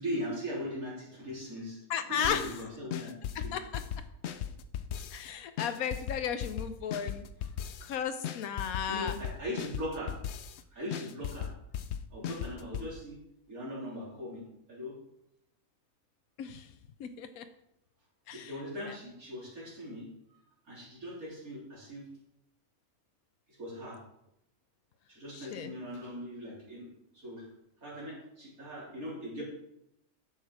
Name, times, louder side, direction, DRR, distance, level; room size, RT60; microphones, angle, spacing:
voice 1, 0.0-1.8 2.1-3.5 8.9-10.1 10.7-11.5 12.1-13.2 13.5-14.9 18.3-20.1 20.7-22.1 23.5-24.0 25.1-26.9 27.1-27.4 27.8-29.4, equal, 80° right, -6 dB, 4.2 m, -40 dB
voice 2, 1.9-2.5 3.5-3.7 5.1-7.2 7.8-9.2 16.4-16.7 17.0-17.5 18.3-18.5 18.8-19.0 25.3-25.7, left 8 dB, 85° left, 9 dB, 1.1 m, -34 dB
sound 1, 2.2-2.6 2.9-5.3 5.6-7.9 8.2-10.6 10.9-12.9, left 9 dB, 60° left, 0.8 m, -37 dB
10.0 x 7.2 x 4.7 m, 0.80 s
omnidirectional pair, 1.5 m